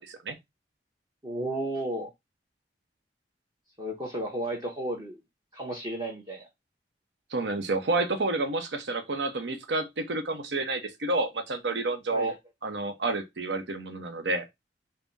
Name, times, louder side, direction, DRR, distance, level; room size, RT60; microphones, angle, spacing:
voice 1, 1.2-2.1 3.8-5.2 5.5-6.5 12.1-12.3, right 1 dB, 25° right, 0.7 m, -33 dB
voice 2, 7.3-12.3 12.6-14.5, right 2 dB, 85° right, 0.8 m, -29 dB
3.6 x 2.2 x 3.9 m
head